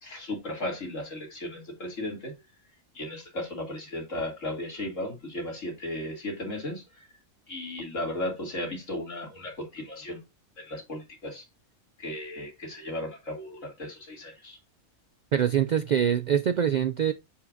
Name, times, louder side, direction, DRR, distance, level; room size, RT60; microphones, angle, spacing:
voice 1, 0.0-2.3 2.9-6.8 7.5-10.2 10.6-11.4 12.0-14.6, left 1 dB, 80° left, 3.2 m, -35 dB
voice 2, 15.3-17.1, right 9 dB, 85° right, 0.4 m, -24 dB
7.3 x 7.1 x 2.6 m
omnidirectional pair, 1.3 m